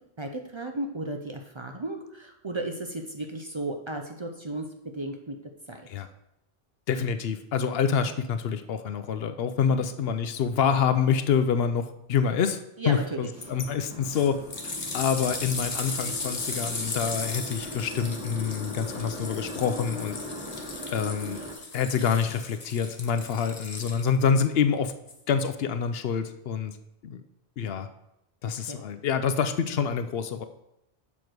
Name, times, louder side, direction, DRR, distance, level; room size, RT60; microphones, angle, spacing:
voice 1, 0.2-4.7 4.9-5.4 5.7-5.9 9.7-9.8 12.8-13.3 28.4-28.8, right 2 dB, 35° right, 3 dB, 0.6 m, -34 dB
voice 2, 6.9-20.2 20.9-21.4 21.7-24.9 25.3-26.8 27.0-27.2 27.6-27.9 28.4-30.4, left 6 dB, 75° left, 10 dB, 0.8 m, -27 dB
sound 1, 13.3-21.5, equal, 5° right, 1.5 m, -40 dB
sound 2, 13.4-13.7 14.1-24.3 25.1-25.2, left 3 dB, 40° left, 1.0 m, -36 dB
7.2 x 6.2 x 4.6 m, 0.84 s
omnidirectional pair, 1.0 m